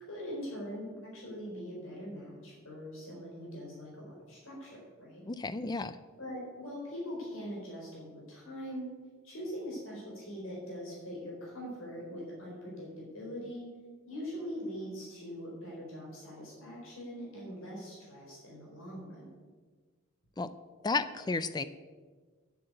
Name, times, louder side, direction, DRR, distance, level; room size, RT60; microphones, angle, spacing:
voice 1, 0.1-5.2 6.2-8.9 9.2-13.7 14.1-19.3, equal, 70° left, -3 dB, 4.3 m, -42 dB
voice 2, 5.3-6.0 20.4-20.5 20.8-21.6, left 3 dB, 20° left, 13 dB, 0.4 m, -32 dB
9.6 x 7.8 x 9.0 m, 1.4 s
head